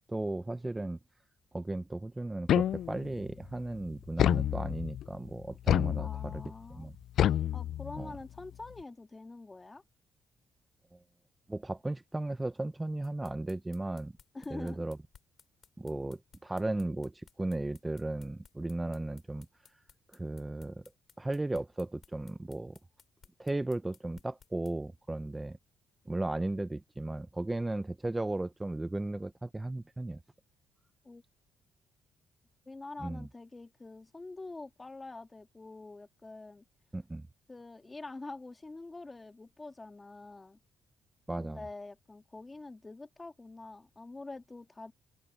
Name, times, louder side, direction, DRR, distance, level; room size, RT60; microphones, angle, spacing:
voice 1, 0.1-1.0 1.5-6.4 6.7-6.9 8.0-8.1 11.5-14.1 14.5-15.0 15.8-19.5 20.1-20.8 21.2-22.8 23.4-25.6 26.1-30.2 33.0-33.3 36.9-37.2 41.3-41.6, right 2 dB, 15° right, 0.6 m, -35 dB
sound 1, 2.5-3.2 4.2-5.0 5.7-6.5 7.2-8.2, left 11 dB, 70° left, 0.3 m, -28 dB
voice 2, 6.0-6.9 7.5-9.8 14.3-14.8 31.0-31.2 32.7-36.6 37.5-40.6 41.4-44.9, left 3 dB, 20° left, 1.9 m, -46 dB
sound 2, 13.0-24.7, left 7 dB, 50° left, 4.5 m, -60 dB
cardioid pair, 90°, 0 cm